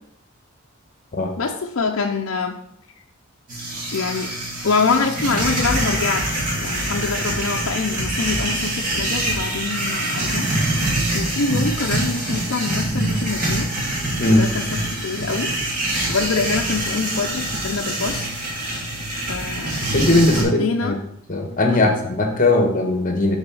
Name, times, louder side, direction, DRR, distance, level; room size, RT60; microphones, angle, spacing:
voice 1, 1.4-2.6 3.9-4.3 4.6-6.2 6.5-10.5 11.1-13.7 14.2-15.5 16.1-18.3 19.3-19.8 20.5-21.0 21.7-22.0, left 4 dB, 65° left, 1 dB, 0.6 m, -25 dB
sound 1, 3.5-20.4, right 1 dB, 40° right, 2.2 m, -25 dB
voice 2, 19.9-21.0 21.3-23.4, left 2 dB, 40° left, 3 dB, 1.2 m, -18 dB
6.4 x 4.1 x 6.1 m, 0.76 s
head